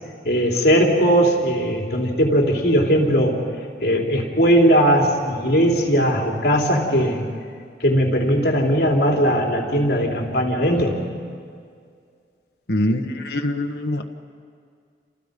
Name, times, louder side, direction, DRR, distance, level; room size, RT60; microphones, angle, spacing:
voice 1, 0.3-3.4 3.8-7.2 7.8-11.0, equal, 65° left, 0 dB, 3.7 m, -19 dB
voice 2, 12.7-14.0, left 1 dB, 80° left, 3 dB, 1.5 m, -23 dB
29.5 x 28.0 x 5.4 m, 2.2 s
head